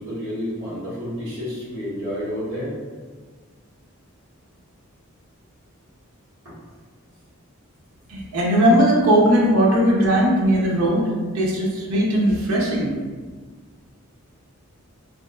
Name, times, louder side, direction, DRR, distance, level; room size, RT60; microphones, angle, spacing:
voice 1, 0.0-2.7 6.4-6.5, equal, 60° right, -12 dB, 1.4 m, -30 dB
voice 2, 8.1-12.9, equal, 85° right, -3 dB, 0.6 m, -18 dB
2.9 x 2.5 x 2.4 m, 1.5 s
head